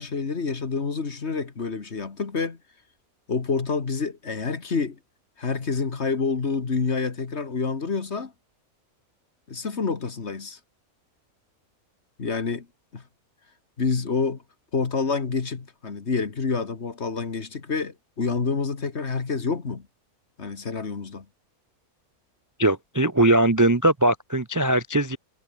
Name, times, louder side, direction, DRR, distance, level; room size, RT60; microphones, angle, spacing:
voice 1, 0.0-2.6 3.3-5.0 5.4-8.3 9.5-10.6 12.2-12.7 12.9-13.0 13.8-14.4 14.7-19.8 20.4-21.3, left 4 dB, 50° left, 2.1 m, -28 dB
voice 2, 22.6-25.2, right 1 dB, 20° right, 0.5 m, -20 dB
omnidirectional pair, 1.5 m